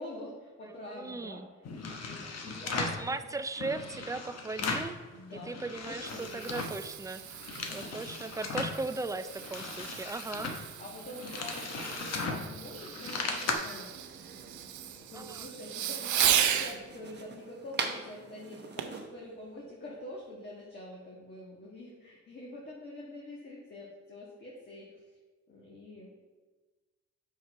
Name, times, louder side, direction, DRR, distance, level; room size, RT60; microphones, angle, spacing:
voice 1, 0.0-1.4 2.0-3.2 5.1-6.5 7.6-8.0 10.8-13.9 15.0-25.0 25.5-26.2, left 1 dB, 35° left, -4 dB, 1.5 m, -46 dB
voice 2, 0.6-1.5 2.8-5.0 5.3-10.5 15.1-15.5, right 3 dB, 10° right, 11 dB, 0.3 m, -38 dB
sound 1, 1.7-3.1 3.5-5.0 5.3-6.8 7.2-8.8 9.3-13.5, left 4 dB, 55° left, 1.0 m, -37 dB
Fireworks, 5.8-16.8 18.8-19.1 19.6-19.7, right 10 dB, 75° right, 0.6 m, -35 dB
sound 2, 13.9-19.1, right 5 dB, 35° right, 0.9 m, -41 dB
6.0 x 5.5 x 4.5 m, 1.3 s
cardioid pair, 90°, 30 cm